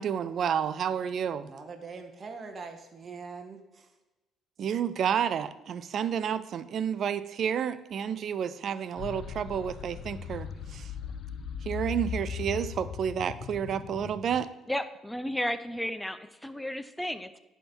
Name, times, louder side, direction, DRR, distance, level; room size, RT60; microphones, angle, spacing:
voice 1, 0.0-1.5 4.6-10.9 11.7-14.5, right 8 dB, 55° right, 15 dB, 0.4 m, -30 dB
voice 2, 1.4-3.9, right 4 dB, 40° right, 5 dB, 0.9 m, -43 dB
sound 1, 9.0-14.4, left 7 dB, 55° left, 0.5 m, -38 dB
voice 3, 14.7-17.4, left 1 dB, 5° left, 11 dB, 0.6 m, -33 dB
10.5 x 3.6 x 4.4 m, 1.0 s
hypercardioid pair, 60°, 0 cm